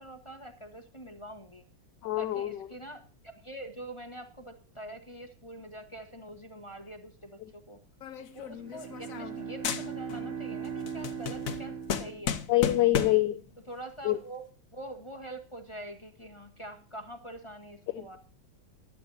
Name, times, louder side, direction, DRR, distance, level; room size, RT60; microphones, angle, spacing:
voice 1, 0.0-1.6 2.2-7.8 8.3-12.4 13.7-14.4 14.7-18.2, right 1 dB, 20° left, 5 dB, 0.9 m, -45 dB
voice 2, 2.0-2.7 12.5-13.4 14.0-14.2 17.9-18.2, left 16 dB, 70° left, 7 dB, 1.2 m, -26 dB
sound 1, 8.0-9.4 9.6-10.3 10.6-13.3, left 7 dB, 55° left, 1.1 m, -34 dB
Bowed string instrument, 8.4-12.8, right 6 dB, 45° right, 2.0 m, -39 dB
14.5 x 11.5 x 2.7 m, 0.39 s
omnidirectional pair, 2.2 m